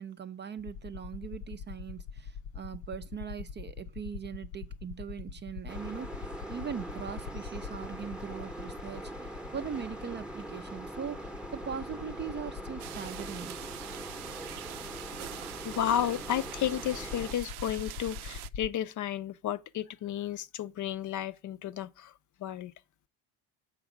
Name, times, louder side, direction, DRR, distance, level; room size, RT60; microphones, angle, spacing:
voice 1, 0.0-13.6, right 7 dB, 30° right, 0.4 m, -40 dB
sound 1, 0.6-18.7, left 6 dB, 90° left, 0.7 m, -44 dB
sound 2, 5.7-17.3, right 1 dB, 5° right, 0.8 m, -42 dB
sound 3, 12.8-18.5, right 13 dB, 75° right, 0.6 m, -44 dB
voice 2, 15.6-22.1 22.4-22.7, left 10 dB, 50° left, 0.6 m, -32 dB
7.3 x 5.0 x 4.8 m
cardioid pair, 105°, 40 cm